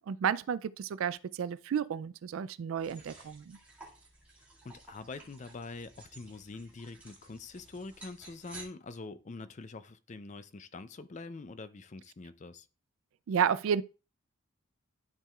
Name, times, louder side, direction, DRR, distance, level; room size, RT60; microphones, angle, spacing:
voice 1, 0.0-3.6 13.3-13.8, right 7 dB, 75° right, 0.3 m, -31 dB
sound 1, 2.8-8.6, right 2 dB, 5° right, 2.0 m, -54 dB
voice 2, 4.6-12.7, left 3 dB, 35° left, 0.4 m, -45 dB
12.0 x 4.6 x 2.3 m
head